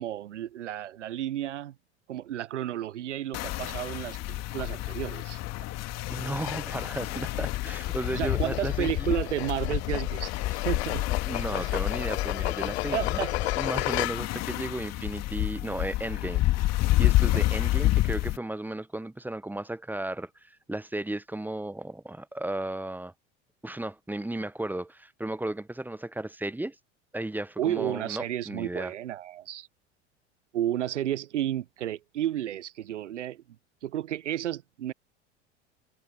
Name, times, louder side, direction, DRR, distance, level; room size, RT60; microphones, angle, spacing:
voice 1, 0.0-1.7 2.1-5.4 8.2-11.0 11.6-11.7 12.9-13.3 17.3-17.4 27.6-29.7 30.5-33.4 33.8-34.9, right 12 dB, 80° right, 0.9 m, -32 dB
sound 1, 3.3-18.4, left 16 dB, 45° left, 2.5 m, -29 dB
voice 2, 6.1-9.2 11.3-13.2 13.6-16.7 17.0-23.1 23.6-26.8 27.1-28.9, right 1 dB, 5° right, 1.0 m, -34 dB
sound 2, 6.4-14.5, left 19 dB, 65° left, 1.0 m, -35 dB
figure-of-eight pair, 75°, 35 cm